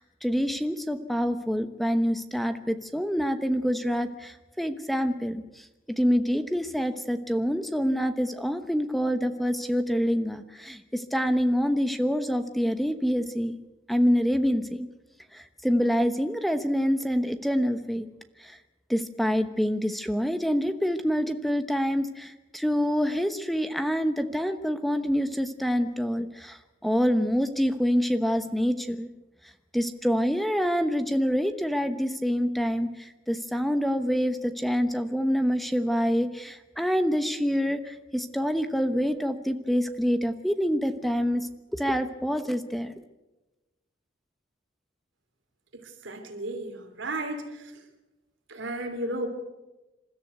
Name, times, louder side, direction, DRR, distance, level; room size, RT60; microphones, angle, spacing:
voice 1, 0.0-5.4 5.9-13.6 13.9-14.9 15.3-18.1 18.4-18.6 18.9-29.1 29.7-42.9, equal, ahead, 9 dB, 1.0 m, -26 dB
voice 2, 45.8-47.7 48.5-49.3, right 1 dB, 75° right, 5 dB, 3.2 m, -34 dB
27.5 x 13.5 x 8.1 m, 1.1 s
head